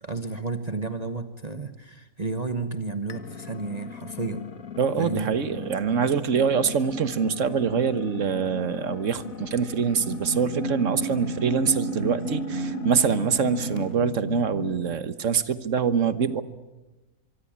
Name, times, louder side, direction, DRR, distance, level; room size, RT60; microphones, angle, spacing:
voice 1, 0.0-4.4 5.0-5.3, right 3 dB, 30° right, 8 dB, 1.2 m, -32 dB
sound 1, 3.1-14.0, left 6 dB, 70° left, 1.9 m, -39 dB
voice 2, 4.8-16.4, right 6 dB, 60° right, 12 dB, 1.5 m, -25 dB
sound 2, 10.0-14.9, right 1 dB, 40° left, 3.9 m, -32 dB
25.0 x 23.5 x 8.8 m, 1.1 s
omnidirectional pair, 1.5 m